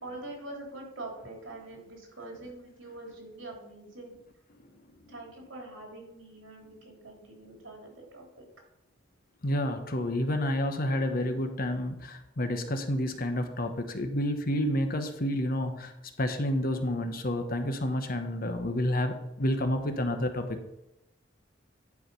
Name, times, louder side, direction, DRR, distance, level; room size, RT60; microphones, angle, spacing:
voice 1, 0.0-4.2 5.1-8.5, right 2 dB, 80° right, 0 dB, 3.2 m, -44 dB
voice 2, 9.4-15.9 16.2-20.6, left 1 dB, 50° left, 7 dB, 1.0 m, -29 dB
10.5 x 4.9 x 5.6 m, 0.87 s
head